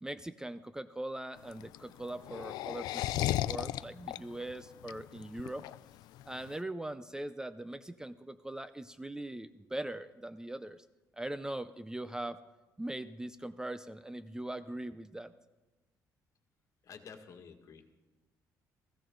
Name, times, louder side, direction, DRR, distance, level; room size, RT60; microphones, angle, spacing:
voice 1, 0.0-5.7 6.3-10.8 11.1-12.4 12.8-15.3, right 1 dB, 10° right, 14 dB, 0.5 m, -41 dB
sound 1, 1.4-6.5, left 14 dB, 90° left, 0.4 m, -35 dB
voice 2, 16.8-18.0, left 6 dB, 55° left, 4 dB, 1.8 m, -51 dB
16.5 x 15.5 x 3.9 m, 1.1 s
cardioid pair, 100°, 7 cm